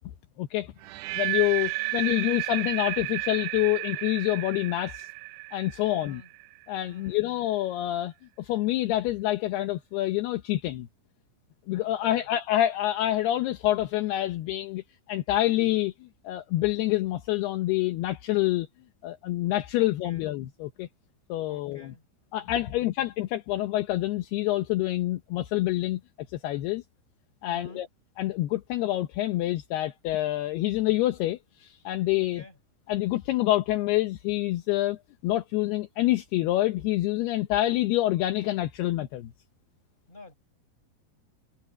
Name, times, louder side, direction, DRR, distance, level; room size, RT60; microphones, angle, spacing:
voice 1, 0.4-0.7 1.1-5.1 5.5-6.2 6.7-10.9 11.7-14.8 15.1-18.7 19.0-20.9 21.3-21.9 22.3-26.0 26.3-26.8 27.4-27.9 28.2-32.4 32.9-35.0 35.2-39.3, left 15 dB, 75° left, 2.4 m, -27 dB
sound 1, 0.8-6.8, right 22 dB, 85° right, 2.4 m, -33 dB
voice 2, 1.8-2.3 5.9-6.3 6.8-7.2 11.8-12.2 19.8-20.3 21.5-22.1 22.4-22.8 27.5-27.8 32.2-32.6 40.1-40.3, left 1 dB, 10° left, 7.0 m, -50 dB
omnidirectional pair, 5.7 m